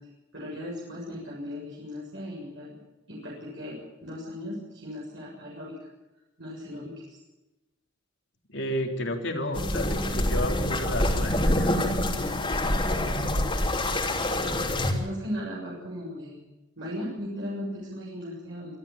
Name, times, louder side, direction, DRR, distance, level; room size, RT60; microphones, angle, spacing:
voice 1, 0.3-2.8 3.1-5.9 6.4-7.2 14.9-16.4 16.8-18.7, equal, 65° right, -4 dB, 7.1 m, -37 dB
voice 2, 8.5-11.8, left 1 dB, 65° left, 4 dB, 3.6 m, -32 dB
sound 1, 9.5-14.9, left 1 dB, 25° left, 3.3 m, -26 dB
26.5 x 13.5 x 8.6 m, 1.0 s
head